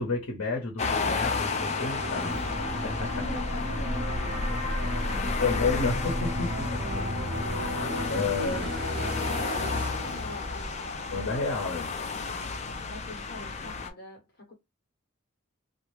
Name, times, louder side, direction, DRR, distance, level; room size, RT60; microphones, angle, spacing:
voice 1, 0.0-2.4 2.8-3.3 5.4-6.7 8.1-8.6 11.1-11.9, left 4 dB, 70° left, 0.8 m, -30 dB
sound 1, 0.8-13.9, left 4 dB, 30° left, 0.4 m, -33 dB
sound 2, 0.9-11.1, left 1 dB, 20° right, 0.9 m, -34 dB
voice 2, 3.2-5.4 6.7-7.1 7.8-11.5 12.8-14.5, left 2 dB, 50° left, 1.0 m, -45 dB
sound 3, 6.9-12.8, right 1 dB, 80° right, 0.6 m, -42 dB
2.4 x 2.1 x 3.1 m
head